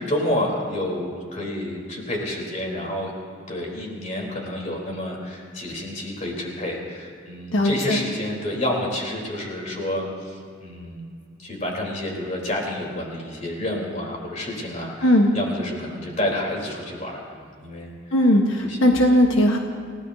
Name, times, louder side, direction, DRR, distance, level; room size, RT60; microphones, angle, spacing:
voice 1, 0.0-3.1 3.5-11.1 11.4-17.9 18.7-18.8 19.1-19.2, left 1 dB, 35° left, -1 dB, 3.7 m, -29 dB
voice 2, 7.5-8.0 15.0-15.3 18.1-19.6, left 1 dB, 85° left, 2 dB, 1.3 m, -18 dB
29.0 x 17.0 x 2.8 m, 2.2 s
head